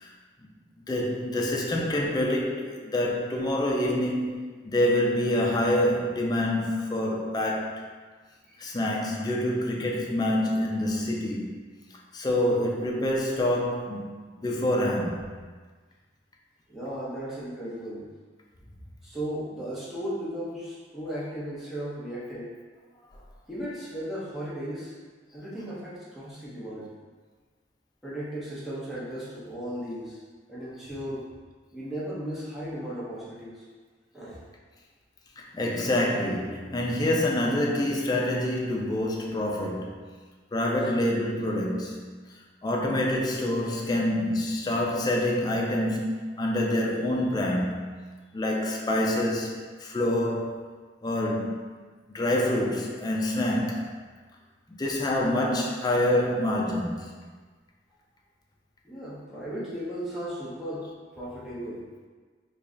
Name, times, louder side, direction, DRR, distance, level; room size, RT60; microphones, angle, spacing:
voice 1, 0.8-4.4 4.6-7.8 8.6-11.5 12.1-15.2 35.4-40.0 40.5-42.2 42.6-47.9 48.3-50.6 51.0-51.6 52.1-53.9 54.7-57.1, left 1 dB, 20° left, -1 dB, 0.4 m, -26 dB
voice 2, 16.7-18.1 19.0-22.5 23.5-24.9 25.3-26.9 28.0-30.2 30.5-31.2 31.7-33.6 34.1-34.4 52.6-52.7 58.8-60.9 61.2-61.8, equal, ahead, -10 dB, 0.9 m, -36 dB
3.2 x 2.3 x 3.8 m, 1.5 s
head